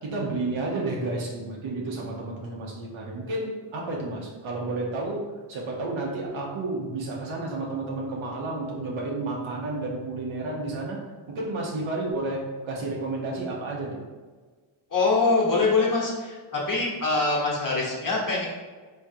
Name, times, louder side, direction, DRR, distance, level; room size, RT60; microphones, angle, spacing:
voice 1, 0.0-11.0 11.3-14.0, right 2 dB, 70° right, -2 dB, 1.1 m, -31 dB
voice 2, 14.9-18.5, left 3 dB, 40° left, -4 dB, 1.4 m, -24 dB
3.5 x 3.1 x 2.8 m, 1.4 s
cardioid pair, 55°, 49 cm